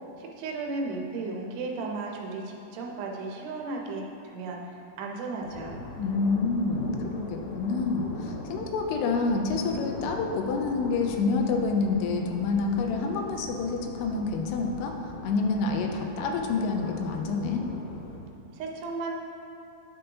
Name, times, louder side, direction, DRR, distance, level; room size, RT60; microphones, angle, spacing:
voice 1, 0.2-5.8 18.5-19.1, right 3 dB, 85° right, 0 dB, 2.9 m, -35 dB
sound 1, 5.4-18.2, left 1 dB, 70° left, 2.5 m, -41 dB
voice 2, 6.0-17.7, left 4 dB, 90° left, 3 dB, 2.7 m, -28 dB
10.5 x 5.3 x 2.9 m, 2.5 s
omnidirectional pair, 4.7 m